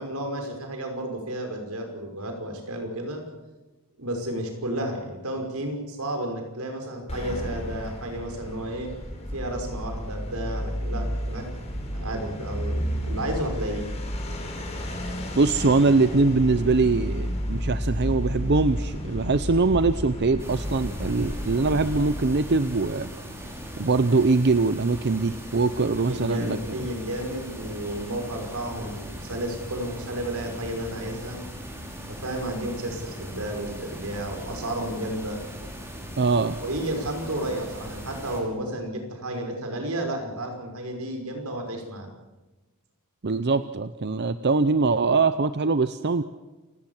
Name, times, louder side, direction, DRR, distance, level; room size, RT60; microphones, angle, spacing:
voice 1, 0.0-3.2 4.0-8.9 9.3-11.5 11.9-13.8 26.0-31.4 32.1-35.4 36.6-42.1, right 1 dB, 80° right, 4 dB, 5.7 m, -32 dB
sound 1, 7.1-22.6, equal, 30° left, 5.0 m, -32 dB
voice 2, 15.4-23.1 23.8-26.9 36.2-36.6 43.2-46.2, right 3 dB, 50° right, 12 dB, 0.7 m, -22 dB
sound 2, 20.4-38.4, equal, 10° right, 5.6 m, -39 dB
28.5 x 17.5 x 7.3 m, 1.1 s
head